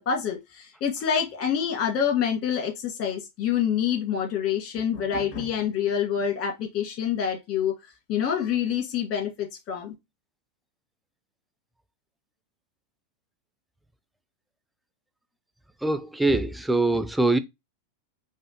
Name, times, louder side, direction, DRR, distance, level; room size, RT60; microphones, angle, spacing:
voice 1, 0.0-7.7 8.1-9.9, left 8 dB, 45° left, 2.1 m, -27 dB
voice 2, 15.8-17.4, right 2 dB, 5° right, 0.4 m, -23 dB
4.9 x 2.5 x 4.2 m
figure-of-eight pair, 90°, 0 cm